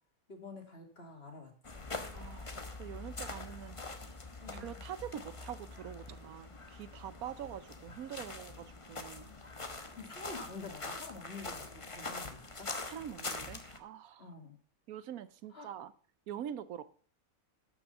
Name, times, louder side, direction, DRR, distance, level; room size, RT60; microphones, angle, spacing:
voice 1, 0.3-1.9 4.4-4.8 9.9-12.7 14.2-14.6 15.5-15.7, left 3 dB, 40° left, 2.8 m, -48 dB
sound 1, 1.6-13.8, left 3 dB, 25° left, 1.0 m, -44 dB
voice 2, 2.1-3.8 4.5-9.3 12.8-14.3 14.9-15.9 16.3-16.9, right 10 dB, 75° right, 1.1 m, -45 dB
12.5 x 6.2 x 6.8 m
omnidirectional pair, 1.6 m